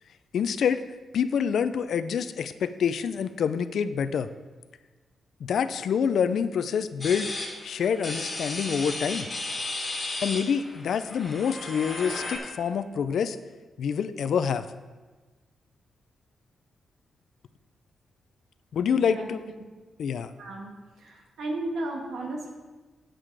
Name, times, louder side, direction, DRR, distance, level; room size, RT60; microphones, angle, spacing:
voice 1, 0.3-0.8 1.1-4.3 5.4-7.3 7.6-9.3 10.2-13.4 13.8-14.6 18.7-19.4 20.0-20.3, left 7 dB, 70° left, 12 dB, 0.4 m, -26 dB
sound 1, 7.0-12.4, left 2 dB, 25° left, 1.9 m, -34 dB
voice 2, 18.9-19.3 20.4-20.7 21.0-22.5, right 2 dB, 90° right, 1 dB, 1.7 m, -34 dB
8.9 x 7.6 x 4.7 m, 1.3 s
wide cardioid pair, 150°, 0 cm